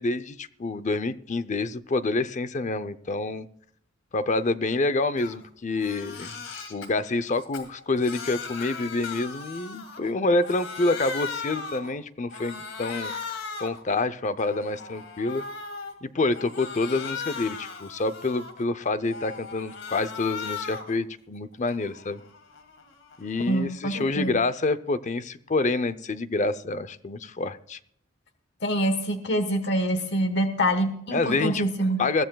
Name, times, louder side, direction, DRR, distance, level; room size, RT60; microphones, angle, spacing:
voice 1, 0.0-3.5 4.1-6.3 6.7-13.1 13.6-15.4 16.0-22.2 23.2-27.8 31.1-31.7 32.0-32.2, left 3 dB, 40° left, 14 dB, 0.6 m, -27 dB
Crying sobbing, 5.2-5.4 5.7-6.9 7.3-10.1 10.4-11.9 12.3-13.8 14.3-15.9 16.3-18.6 19.0-21.0 21.4-23.7, left 5 dB, 85° left, 2.5 m, -38 dB
voice 2, 23.5-24.3 28.6-32.0, equal, 65° left, 9 dB, 1.2 m, -25 dB
21.5 x 15.0 x 2.3 m, 0.66 s
head